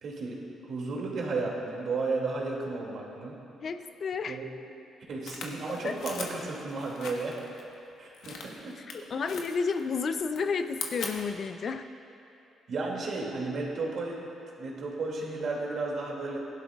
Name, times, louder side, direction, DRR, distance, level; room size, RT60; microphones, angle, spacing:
voice 1, 0.0-3.4 4.3-4.5 5.1-7.3 8.0-8.8 9.2-9.3 12.7-14.2 14.6-16.4, right 3 dB, 60° right, -2 dB, 2.3 m, -33 dB
voice 2, 3.6-4.4 5.8-6.0 8.8-8.9 9.1-11.9, left 5 dB, 50° left, 9 dB, 0.5 m, -31 dB
sound 1, 5.2-7.6 8.1-8.9 9.3-10.0 10.2-11.4, left 4 dB, 75° left, 1.2 m, -40 dB
17.0 x 11.5 x 2.4 m, 2.7 s
cardioid pair, 95°, 0 cm